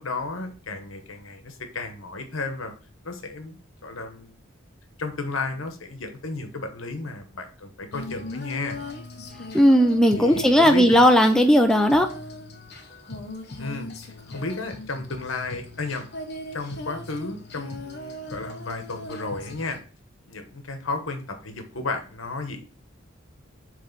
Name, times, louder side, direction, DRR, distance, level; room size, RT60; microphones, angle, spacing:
voice 1, 0.0-2.7 3.0-4.3 5.0-8.8 10.1-11.0 13.6-16.1 16.5-19.8 20.3-22.6, left 3 dB, 70° left, 6 dB, 1.1 m, -33 dB
Female singing, 7.9-19.8, left 1 dB, 50° left, 1.0 m, -39 dB
voice 2, 9.5-12.1, equal, 5° left, 4 dB, 0.4 m, -16 dB
7.6 x 3.2 x 3.9 m, 0.39 s
head